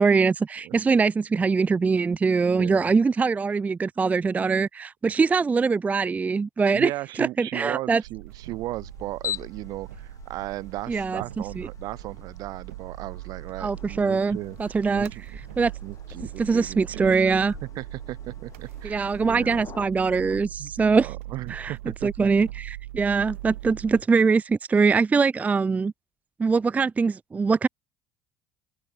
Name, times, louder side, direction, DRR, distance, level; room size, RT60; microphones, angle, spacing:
voice 1, 0.0-6.9 7.2-8.0 10.9-11.2 11.6-11.7 13.6-15.1 15.6-15.7 16.4-17.5 18.8-21.1 21.5-21.7 22.0-25.9 26.4-27.7, right 4 dB, 20° right, 0.3 m, -23 dB
voice 2, 2.4-2.9 6.7-15.3 15.8-17.1 17.6-19.6 20.6-20.7 21.0-22.4, right 17 dB, 60° right, 1.3 m, -36 dB
sound 1, 8.0-24.0, right 16 dB, 80° right, 1.3 m, -41 dB
sound 2, 8.3-19.9, left 9 dB, 45° left, 3.2 m, -43 dB
open air
hypercardioid pair, 60°, 7 cm